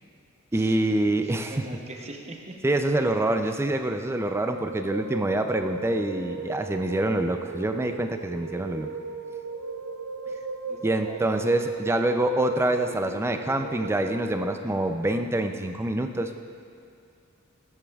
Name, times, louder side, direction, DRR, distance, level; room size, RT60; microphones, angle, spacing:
voice 1, 0.5-1.5 2.6-8.9 10.8-16.3, right 1 dB, 10° right, 6 dB, 0.4 m, -26 dB
voice 2, 1.2-2.6 10.3-10.4 10.7-11.4, right 2 dB, 30° right, 2 dB, 0.8 m, -42 dB
sound 1, 4.3-14.6, right 4 dB, 80° right, 0.4 m, -37 dB
13.5 x 8.4 x 2.4 m, 2.5 s
head